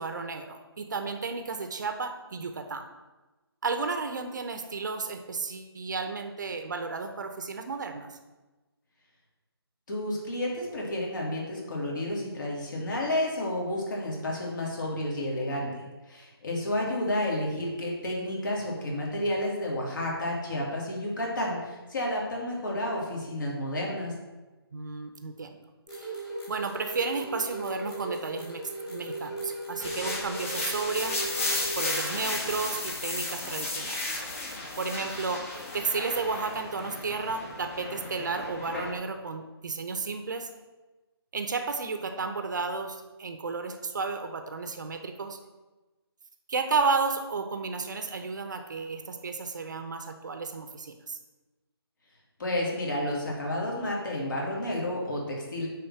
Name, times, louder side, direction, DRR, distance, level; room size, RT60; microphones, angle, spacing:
voice 1, 0.0-2.8 3.6-8.1 24.7-25.5 25.9-26.1 26.5-31.2 31.7-34.2 34.8-40.5 41.3-45.4 46.5-51.2, right 4 dB, 45° right, 6 dB, 0.8 m, -32 dB
voice 2, 9.9-24.1 52.4-55.7, left 1 dB, 50° left, -3 dB, 2.8 m, -31 dB
sound 1, 25.9-32.0, right 2 dB, 15° left, 2.0 m, -37 dB
sound 2, 29.8-38.9, left 2 dB, 35° left, 1.5 m, -34 dB
9.6 x 3.9 x 6.6 m, 1.2 s
figure-of-eight pair, 155°, 13 cm